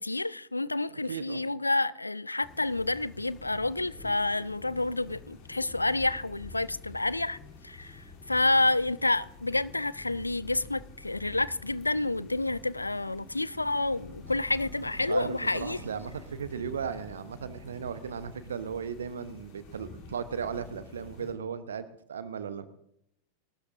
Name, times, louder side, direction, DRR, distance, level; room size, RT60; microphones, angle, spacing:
voice 1, 0.0-7.4 7.6-15.8, left 2 dB, 85° left, 0.4 m, -29 dB
voice 2, 0.9-1.4 15.1-22.7, right 7 dB, 65° right, 1.0 m, -36 dB
sound 1, 2.4-21.3, left 3 dB, 50° left, 3.5 m, -49 dB
sound 2, 10.0-10.2 10.4-16.4, right 8 dB, 30° right, 1.9 m, -56 dB
26.0 x 13.0 x 2.7 m
figure-of-eight pair, 90°, 0 cm